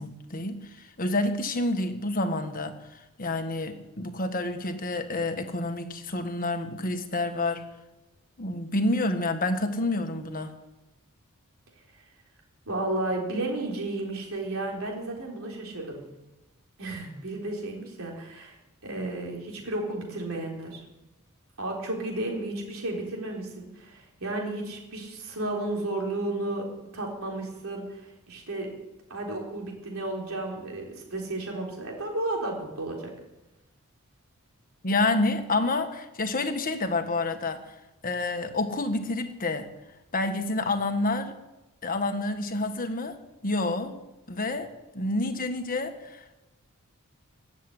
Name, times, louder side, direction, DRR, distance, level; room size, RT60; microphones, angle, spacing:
voice 1, 0.0-7.7 8.4-10.5 34.8-37.7 38.0-39.7 40.1-41.4 41.8-43.2 43.4-44.0 44.3-46.4, left 2 dB, 40° left, 7 dB, 1.4 m, -28 dB
voice 2, 12.7-16.0 16.8-18.6 18.8-20.8 21.6-26.7 26.9-28.7 29.1-33.1, right 2 dB, 65° right, -1 dB, 4.1 m, -33 dB
16.0 x 7.6 x 10.0 m, 1.0 s
head